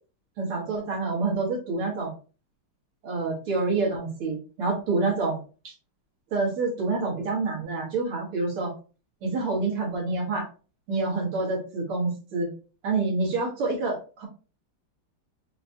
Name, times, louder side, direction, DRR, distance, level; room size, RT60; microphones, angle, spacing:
voice 1, 0.4-2.1 3.0-5.4 5.6-5.7 6.3-8.7 9.2-10.5 10.9-12.5 12.8-14.3, right 3 dB, 90° right, -2 dB, 2.5 m, -27 dB
5.8 x 2.3 x 2.7 m, 0.35 s
omnidirectional pair, 2.4 m